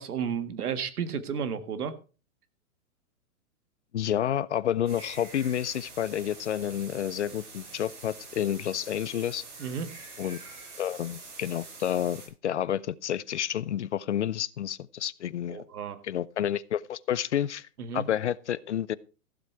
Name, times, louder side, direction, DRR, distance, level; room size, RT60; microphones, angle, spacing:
voice 1, 0.0-2.0 9.6-9.9 15.5-16.0 17.8-18.1, right 7 dB, 80° right, 1.9 m, -32 dB
voice 2, 3.9-9.4 10.2-10.4 10.8-15.6 16.0-17.7 17.9-19.0, left 10 dB, 50° left, 0.5 m, -30 dB
sound 1, 4.9-12.3, right 3 dB, 50° right, 8.0 m, -46 dB
15.0 x 7.9 x 4.6 m
hypercardioid pair, 175°, 45 cm